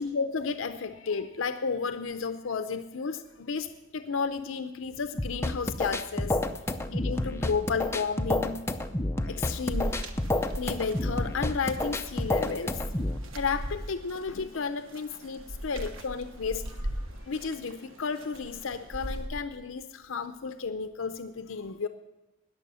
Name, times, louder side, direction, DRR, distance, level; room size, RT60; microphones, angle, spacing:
voice 1, 0.0-6.4 6.9-8.6 9.2-10.0 10.6-12.8 13.3-16.9 17.2-21.9, left 5 dB, 75° left, 9 dB, 0.6 m, -33 dB
sound 1, 5.2-13.2, left 1 dB, 15° left, 0.5 m, -30 dB
sound 2, 9.7-19.3, equal, 75° right, 1.1 m, -39 dB
20.0 x 6.9 x 5.5 m, 1.0 s
head